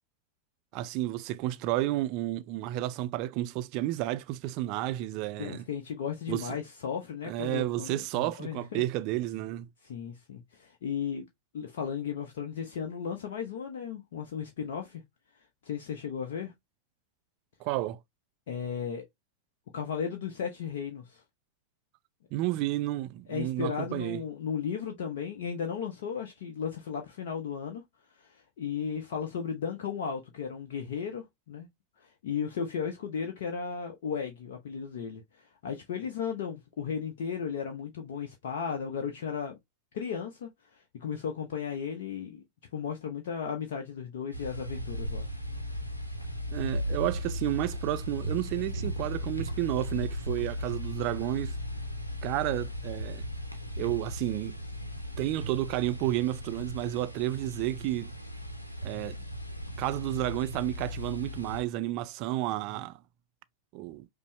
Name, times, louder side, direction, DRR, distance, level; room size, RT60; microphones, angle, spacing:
voice 1, 0.7-5.6 6.3-6.6 7.3-9.7 17.6-18.0 22.3-24.2 46.5-51.6 52.2-53.3 53.8-54.6 55.2-58.1 58.8-59.2 59.8-63.0 63.7-64.1, right 15 dB, 45° right, 0.3 m, -31 dB
voice 2, 5.4-8.8 9.8-11.3 11.5-15.0 15.6-16.5 18.5-19.0 19.7-21.2 23.3-27.8 28.1-31.7 32.0-39.6 39.9-42.4 42.7-45.3, left 7 dB, 55° left, 0.6 m, -35 dB
sound 1, 44.3-61.6, equal, 85° left, 0.8 m, -36 dB
5.3 x 2.0 x 3.1 m
figure-of-eight pair, 90°, 0 cm